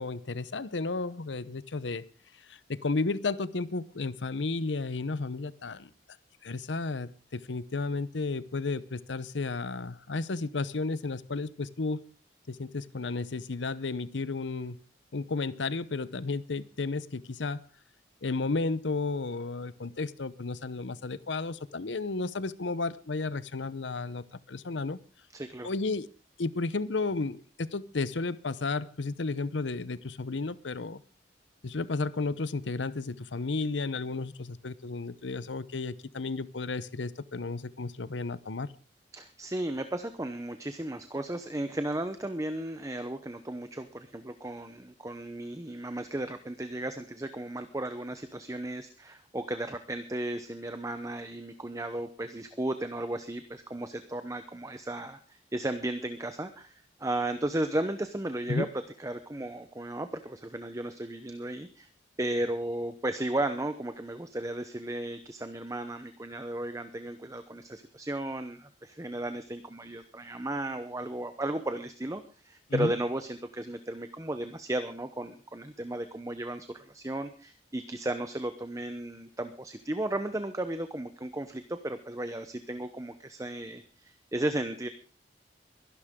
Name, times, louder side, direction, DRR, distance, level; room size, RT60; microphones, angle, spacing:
voice 1, 0.0-2.0 2.5-5.9 6.4-12.1 12.5-14.8 15.1-17.6 18.2-25.0 25.6-26.1 26.4-31.0 31.6-38.7 58.5-58.7 72.7-72.9, left 3 dB, 90° left, 17 dB, 0.8 m, -33 dB
voice 2, 25.3-25.7 39.1-61.9 62.2-84.9, right 1 dB, 20° right, 9 dB, 0.8 m, -35 dB
22.5 x 11.5 x 3.7 m, 0.37 s
head